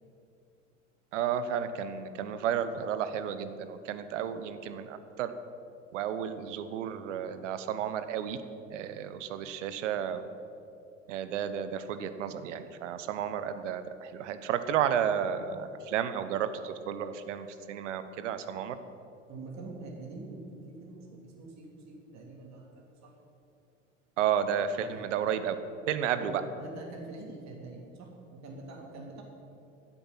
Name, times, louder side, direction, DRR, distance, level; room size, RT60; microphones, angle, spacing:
voice 1, 1.1-5.3 5.9-8.4 8.7-10.2 11.1-18.8 24.2-25.6 25.9-26.4, right 9 dB, 70° right, 11 dB, 1.0 m, -32 dB
voice 2, 19.3-23.1 24.8-25.2 26.2-29.2, right 3 dB, 45° right, 0 dB, 3.2 m, -45 dB
10.0 x 7.9 x 9.0 m, 2.7 s
hypercardioid pair, 80°, 37 cm